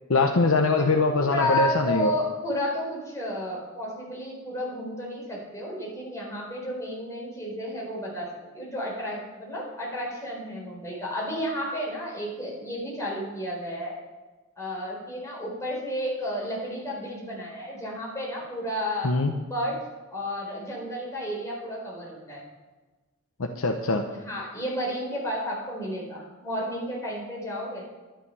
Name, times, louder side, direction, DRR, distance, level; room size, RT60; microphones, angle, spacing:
voice 1, 0.1-2.1 19.0-19.3 23.4-24.0, left 3 dB, 80° left, 4 dB, 0.9 m, -22 dB
voice 2, 0.8-8.3 8.5-14.0 14.6-19.1 19.5-19.8 20.1-22.5 23.8-27.8, left 1 dB, 15° left, -4 dB, 4.3 m, -32 dB
12.0 x 10.5 x 5.6 m, 1.2 s
head